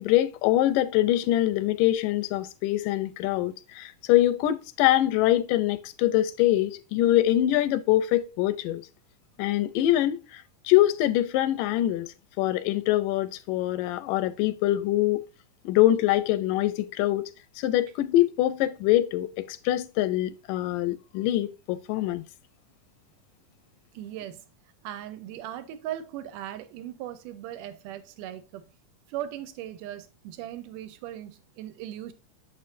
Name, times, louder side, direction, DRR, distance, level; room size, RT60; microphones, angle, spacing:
voice 1, 0.0-8.8 9.4-15.2 15.7-17.3 17.6-22.2, left 14 dB, 85° left, 2.2 m, -24 dB
voice 2, 23.9-24.4 24.8-28.7 29.1-32.1, right 12 dB, 85° right, 2.3 m, -38 dB
6.6 x 6.6 x 2.6 m
omnidirectional pair, 3.8 m